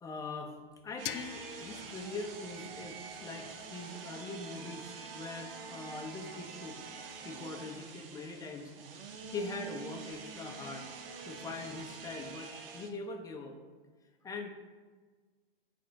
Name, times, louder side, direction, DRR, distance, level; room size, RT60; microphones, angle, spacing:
voice 1, 0.0-6.8 7.2-8.7 9.3-10.9 11.2-13.5 14.2-14.5, left 3 dB, 10° left, 3 dB, 0.7 m, -42 dB
sound 1, 1.0-3.9, left 12 dB, 65° left, 0.4 m, -46 dB
sound 2, 1.0-12.9, right 5 dB, 70° right, 0.8 m, -46 dB
8.5 x 3.5 x 4.0 m, 1.4 s
hypercardioid pair, 130°, 29 cm